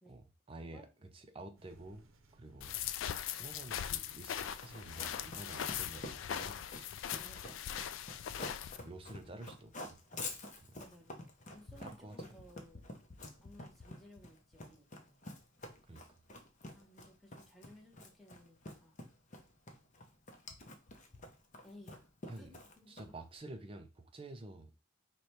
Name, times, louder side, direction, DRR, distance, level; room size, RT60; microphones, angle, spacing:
voice 1, 0.0-2.1 2.3-2.8 3.3-6.9 8.8-10.0 10.6-10.8 11.8-12.2 15.9-16.0 22.3-22.5 22.9-24.7, right 2 dB, 25° right, 0.5 m, -50 dB
sound 1, 1.6-6.7, right 2 dB, 70° right, 0.7 m, -65 dB
sound 2, 2.6-8.8, left 10 dB, 65° left, 0.3 m, -40 dB
Run, 4.6-23.3, left 2 dB, 35° left, 0.7 m, -48 dB
voice 2, 7.2-7.7 10.7-11.1 11.5-12.8 13.4-15.2 16.7-19.1 21.6-22.1 22.4-23.1, left 1 dB, ahead, 0.9 m, -59 dB
4.9 x 2.3 x 4.1 m
head